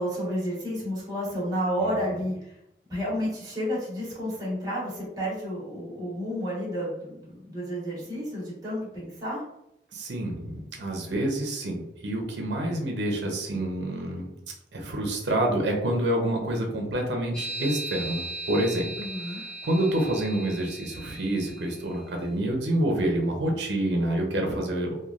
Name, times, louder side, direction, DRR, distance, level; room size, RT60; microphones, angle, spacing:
voice 1, 0.0-2.5 2.9-9.4 19.0-19.4, equal, 20° right, -7 dB, 1.1 m, -31 dB
voice 2, 9.9-14.3 14.7-18.9 19.3-25.0, right 1 dB, 75° right, 1 dB, 0.6 m, -28 dB
sound 1, 17.3-22.0, right 2 dB, 5° left, 0.4 m, -37 dB
3.0 x 2.3 x 2.4 m, 0.82 s
head